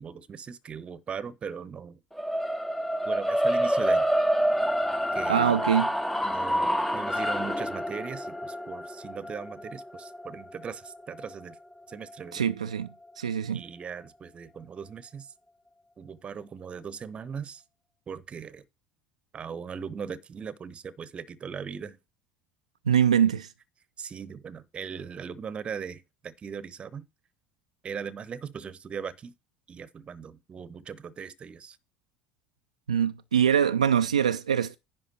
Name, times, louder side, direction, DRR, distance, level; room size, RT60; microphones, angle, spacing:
voice 1, 0.0-2.0 3.0-4.1 5.1-5.6 6.2-11.6 11.9-12.5 13.5-15.3 16.0-17.6 18.1-18.6 19.3-22.0 24.0-27.1 27.8-29.3 29.7-31.8, right 6 dB, 30° right, 0.8 m, -39 dB
sound 1, 2.2-12.3, equal, 5° left, 0.7 m, -28 dB
voice 2, 5.3-5.9 12.3-12.9 13.2-13.6 22.9-23.5 32.9-34.8, right 8 dB, 80° right, 0.4 m, -23 dB
10.5 x 3.5 x 6.5 m
figure-of-eight pair, 60°, 4 cm